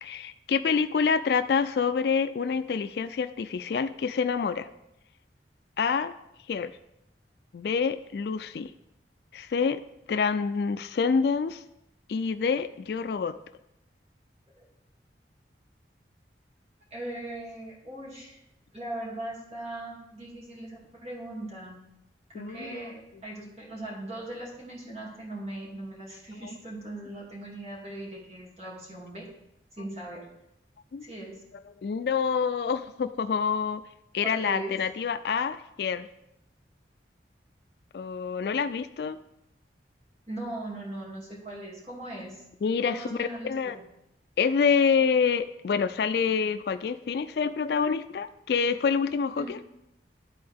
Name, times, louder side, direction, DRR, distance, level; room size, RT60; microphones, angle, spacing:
voice 1, 0.0-4.7 5.8-6.1 6.5-6.7 7.5-8.7 9.3-9.8 10.1-11.6 12.1-13.4 22.3-22.8 26.4-26.5 30.9-31.1 31.8-33.8 34.1-36.1 37.9-39.2 42.6-43.8 44.4-49.6, left 6 dB, 60° left, 11 dB, 0.3 m, -27 dB
voice 2, 16.9-18.4 18.7-21.8 22.3-29.3 29.8-30.3 31.0-31.4 34.2-34.8 40.3-42.4 42.8-43.8 49.4-49.5, right 1 dB, 35° right, -5 dB, 2.4 m, -39 dB
12.5 x 4.2 x 3.5 m, 0.84 s
head